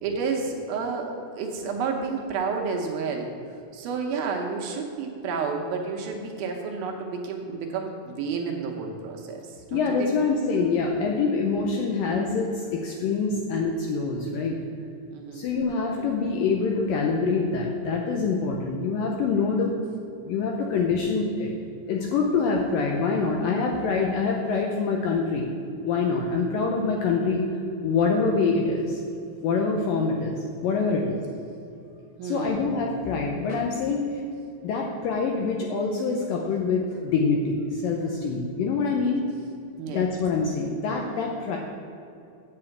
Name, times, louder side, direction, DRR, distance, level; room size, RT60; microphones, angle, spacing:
voice 1, 0.0-3.3 3.7-10.2 15.1-15.5 32.2-32.9 39.8-40.1, right 5 dB, 75° right, 1 dB, 2.5 m, -30 dB
voice 2, 9.7-14.6 15.3-19.7 20.2-21.5 21.9-25.6 25.8-27.4 27.8-29.0 29.4-31.2 32.2-34.2 34.6-39.2 39.9-41.6, left 4 dB, 80° left, 0 dB, 2.1 m, -25 dB
8.7 x 6.1 x 7.8 m, 2.5 s
omnidirectional pair, 4.7 m